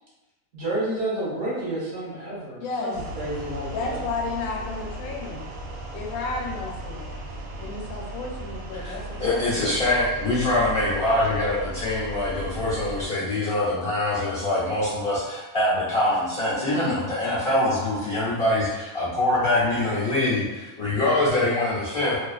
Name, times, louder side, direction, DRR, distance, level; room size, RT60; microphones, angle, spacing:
voice 1, 0.5-4.0, right 1 dB, 55° right, -6 dB, 1.0 m, -30 dB
voice 2, 2.6-3.0 3.7-5.5 5.9-7.1 7.6-9.7, left 3 dB, 90° left, 0 dB, 1.0 m, -32 dB
sound 1, 2.9-13.1, right 1 dB, 75° right, 1.0 m, -36 dB
voice 3, 9.2-22.2, left 1 dB, 50° left, -9 dB, 0.8 m, -24 dB
2.6 x 2.3 x 2.3 m, 1.1 s
omnidirectional pair, 1.5 m